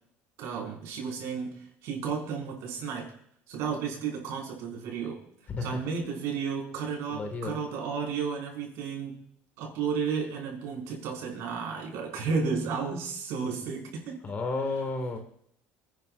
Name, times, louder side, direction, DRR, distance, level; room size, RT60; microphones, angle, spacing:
voice 1, 0.4-3.1 3.5-5.2 5.6-9.2 9.6-14.2, right 5 dB, 70° right, -1 dB, 5.6 m, -33 dB
voice 2, 5.5-5.8 7.1-7.6 14.2-15.2, left 3 dB, 35° left, 6 dB, 2.1 m, -32 dB
29.5 x 10.5 x 2.6 m, 0.69 s
cardioid pair, 120°, 5 cm